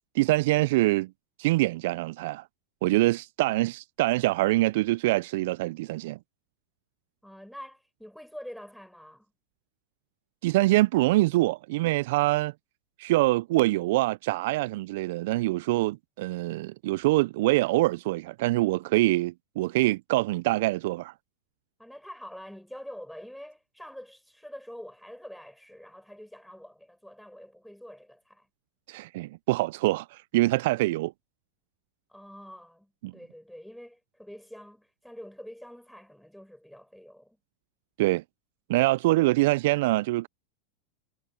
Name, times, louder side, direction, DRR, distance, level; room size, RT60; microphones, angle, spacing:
voice 1, 0.1-1.1 1.4-2.4 2.8-6.2 10.4-12.5 13.0-21.1 28.9-31.1 33.0-33.1 38.0-38.2 38.7-40.3, right 19 dB, 60° right, 0.6 m, -24 dB
voice 2, 7.2-9.3 21.8-28.5 32.1-37.4, equal, ahead, 6.0 m, -46 dB
hypercardioid pair, 90°, 0 cm